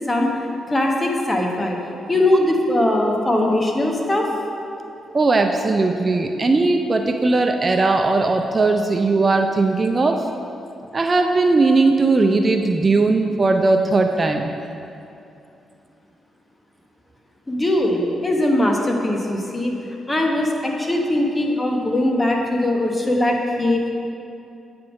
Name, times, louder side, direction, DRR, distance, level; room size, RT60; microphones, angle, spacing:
voice 1, 0.1-1.8 2.1-4.3 17.5-19.7 20.1-23.8, left 1 dB, 20° left, 1 dB, 1.1 m, -20 dB
voice 2, 5.1-10.2 10.9-14.5, right 3 dB, 35° right, 4 dB, 0.4 m, -18 dB
8.7 x 3.6 x 6.0 m, 2.6 s
cardioid pair, 65°, 0 cm